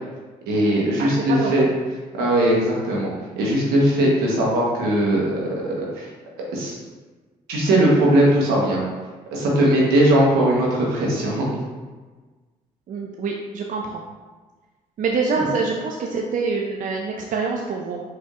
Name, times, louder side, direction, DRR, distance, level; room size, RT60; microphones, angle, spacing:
voice 1, 0.5-1.6 2.2-3.1 3.4-6.1 6.5-6.8 7.5-8.8 9.3-11.5, right 1 dB, 85° right, -4 dB, 1.0 m, -19 dB
voice 2, 1.0-1.7 12.9-14.0 15.0-18.0, right 4 dB, 55° right, 0 dB, 0.5 m, -25 dB
4.1 x 3.4 x 2.4 m, 1.3 s
supercardioid pair, 60°, 16 cm